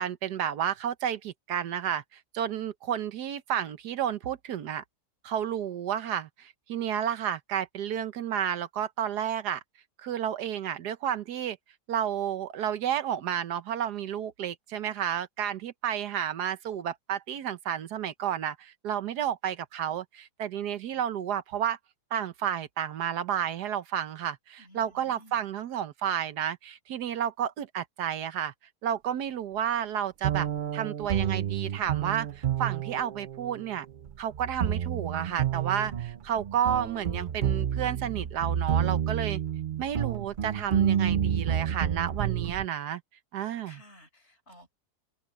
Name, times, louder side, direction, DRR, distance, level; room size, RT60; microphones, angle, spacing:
voice 1, 0.0-4.8 5.2-9.6 10.0-11.6 11.9-21.8 22.1-28.5 28.8-33.9 34.2-39.4 39.8-43.0 43.3-43.8, right 9 dB, 80° right, 1.5 m, -31 dB
voice 2, 24.6-25.4 43.6-44.7, equal, 40° left, 5.1 m, -54 dB
sound 1, 30.2-42.7, right 9 dB, 65° right, 0.5 m, -29 dB
omnidirectional pair, 1.7 m